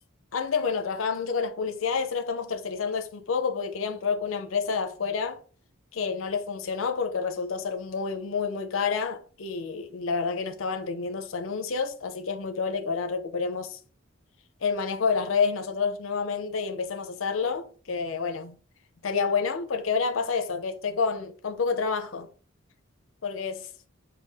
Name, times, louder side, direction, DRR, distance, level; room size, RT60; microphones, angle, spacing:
voice 1, 0.3-5.4 5.9-13.8 14.6-18.5 19.0-22.3 23.2-23.7, left 5 dB, 80° left, 0.6 m, -29 dB
5.6 x 2.3 x 3.4 m
head